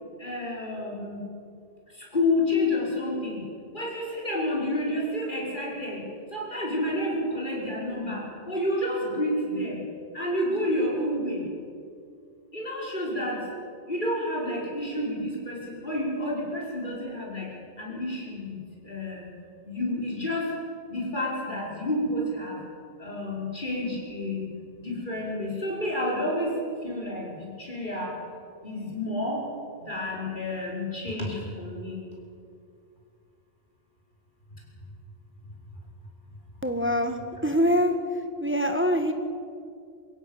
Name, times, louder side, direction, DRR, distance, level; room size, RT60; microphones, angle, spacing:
voice 1, 0.2-1.2 1.9-3.4 3.7-9.8 10.1-11.5 12.5-13.5 13.9-19.3 19.6-22.6 23.0-24.5 24.7-28.2 28.6-29.5 29.8-32.0, left 1 dB, 45° left, -3 dB, 5.9 m, -30 dB
voice 2, 36.6-37.9 38.4-39.1, equal, 10° right, 6 dB, 1.5 m, -24 dB
23.0 x 16.5 x 9.1 m, 2.4 s
omnidirectional pair, 1.2 m